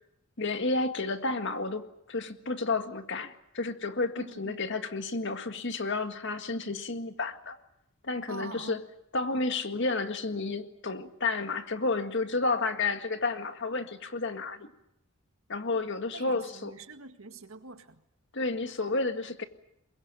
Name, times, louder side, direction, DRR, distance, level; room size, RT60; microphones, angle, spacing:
voice 1, 0.4-7.6 8.0-8.8 9.1-14.7 15.5-16.7 18.3-19.4, left 3 dB, 60° left, 1.8 m, -31 dB
voice 2, 4.2-4.6 8.3-8.8 16.1-18.0, right 2 dB, 85° right, 2.0 m, -45 dB
23.0 x 21.5 x 8.8 m
head